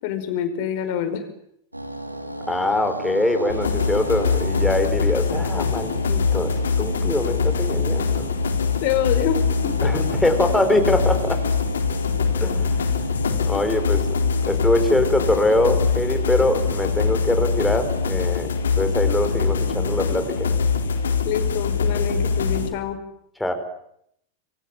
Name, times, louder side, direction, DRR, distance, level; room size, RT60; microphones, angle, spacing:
voice 1, 0.0-1.3 8.8-9.4 9.6-9.9 21.2-23.0, left 10 dB, 45° left, 8 dB, 5.3 m, -26 dB
sound 1, 1.7-20.2, right 1 dB, 85° right, 3.1 m, -35 dB
voice 2, 2.5-8.3 9.8-11.4 12.4-12.7 13.5-14.1 14.5-20.5 23.4-23.5, left 1 dB, 5° left, 6 dB, 4.7 m, -23 dB
sound 2, 3.5-22.7, left 5 dB, 65° left, 3.9 m, -23 dB
27.5 x 23.5 x 9.1 m, 0.73 s
figure-of-eight pair, 90°, 0 cm